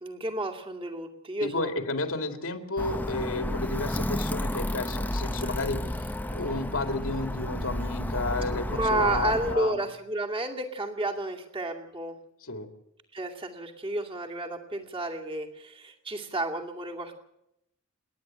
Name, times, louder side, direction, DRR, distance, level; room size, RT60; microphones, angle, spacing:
voice 1, 0.0-1.7 8.7-12.1 13.1-17.2, right 1 dB, 25° right, 2 dB, 2.4 m, -31 dB
voice 2, 1.4-6.1 6.3-9.8 12.4-12.7, left 2 dB, 75° left, 6 dB, 2.4 m, -32 dB
Alarm, 2.8-9.6, left 1 dB, 10° left, 0.7 m, -32 dB
29.0 x 10.5 x 8.9 m, 0.82 s
head